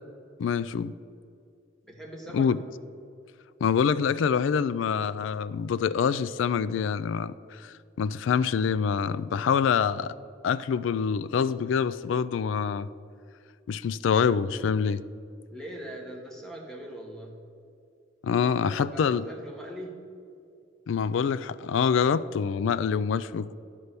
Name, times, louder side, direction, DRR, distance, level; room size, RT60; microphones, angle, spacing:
voice 1, 0.4-1.0 2.3-2.6 3.6-10.1 10.4-12.9 13.7-15.0 18.2-19.2 20.9-23.5, left 6 dB, 75° left, 16 dB, 0.3 m, -26 dB
voice 2, 1.9-2.6 15.5-17.5 18.4-20.1, right 1 dB, ahead, -2 dB, 1.3 m, -41 dB
9.6 x 5.7 x 6.7 m, 2.4 s
head